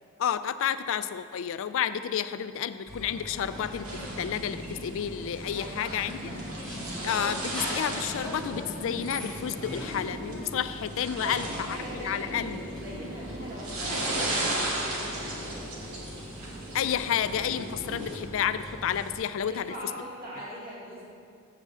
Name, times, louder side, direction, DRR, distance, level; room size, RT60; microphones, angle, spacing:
voice 1, 0.2-3.9 4.2-6.2 7.0-11.8 12.0-12.6 16.7-19.7, left 9 dB, 60° left, 13 dB, 0.3 m, -30 dB
sound 1, 2.9-19.2, equal, 5° left, 1.6 m, -42 dB
sound 2, 3.8-18.2, right 1 dB, 85° right, 1.6 m, -36 dB
voice 2, 5.5-7.0 11.2-15.8 19.5-21.0, equal, 45° right, -6 dB, 2.1 m, -42 dB
7.7 x 4.8 x 6.9 m, 2.2 s
head